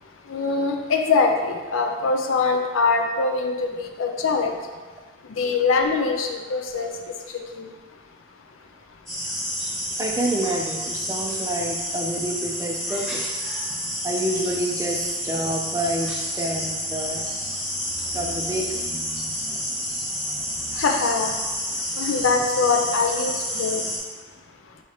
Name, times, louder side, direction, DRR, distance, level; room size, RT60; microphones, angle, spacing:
voice 1, 0.3-4.6 5.3-6.9 7.5-7.7 20.7-21.3 22.0-23.9, left 4 dB, 85° left, 3 dB, 0.5 m, -23 dB
sound 1, 9.1-24.0, equal, ahead, 1.2 m, -29 dB
voice 2, 10.0-13.3 14.0-17.4 18.1-20.8, right 1 dB, 15° right, 1 dB, 0.3 m, -29 dB
5.6 x 2.8 x 3.1 m, 1.4 s
head